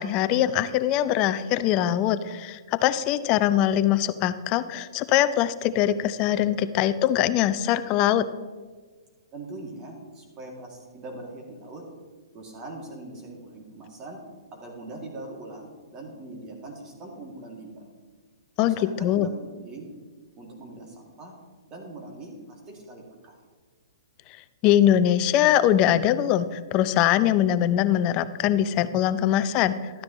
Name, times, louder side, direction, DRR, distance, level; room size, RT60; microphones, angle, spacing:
voice 1, 0.0-8.3 18.6-19.3 24.6-30.0, left 11 dB, 35° left, 13 dB, 0.5 m, -22 dB
voice 2, 9.3-11.9 12.3-14.2 14.5-17.9 18.6-19.9 20.4-21.3 21.7-23.4, right 2 dB, 25° right, -1 dB, 2.4 m, -41 dB
12.5 x 9.5 x 3.0 m, 1.5 s
hypercardioid pair, 130°, 2 cm